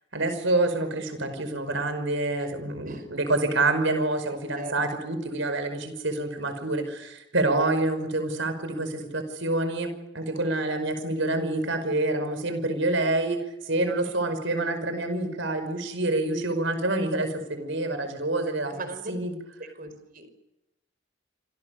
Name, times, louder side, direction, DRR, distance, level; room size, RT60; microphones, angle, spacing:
voice 1, 0.1-13.4 13.6-18.8 19.1-19.3, right 2 dB, 70° right, 9 dB, 5.5 m, -27 dB
voice 2, 18.7-19.1 19.8-20.3, right 3 dB, 45° right, 9 dB, 4.9 m, -39 dB
27.5 x 26.5 x 6.7 m, 0.88 s
head